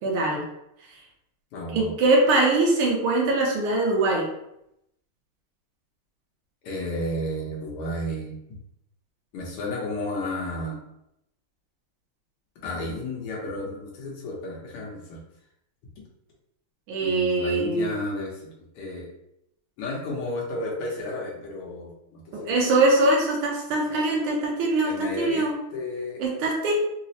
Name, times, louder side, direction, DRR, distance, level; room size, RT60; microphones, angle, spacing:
voice 1, 0.0-0.4 1.7-4.3 16.9-17.9 22.3-25.5 26.2-26.7, right 2 dB, 80° right, -1 dB, 1.7 m, -22 dB
voice 2, 1.5-1.9 6.6-8.4 9.3-10.8 12.6-15.2 17.0-19.1 19.8-22.7 23.9-24.0 24.8-26.2, left 1 dB, 90° left, -3 dB, 1.8 m, -32 dB
4.7 x 2.0 x 2.7 m, 0.81 s
omnidirectional pair, 2.4 m